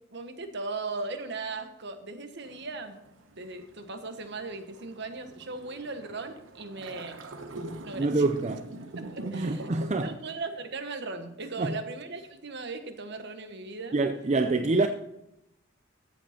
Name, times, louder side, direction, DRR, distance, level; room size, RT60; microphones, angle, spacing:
voice 1, 0.1-3.0 3.4-7.2 7.8-8.2 9.0-14.0, right 3 dB, 60° right, 1.2 m, -38 dB
sound 1, 2.4-10.1, right 2 dB, 90° right, 1.1 m, -43 dB
voice 2, 7.6-8.7 9.3-10.1 11.6-11.8 13.9-14.9, right 3 dB, 35° right, 0.5 m, -26 dB
14.0 x 7.6 x 4.4 m
head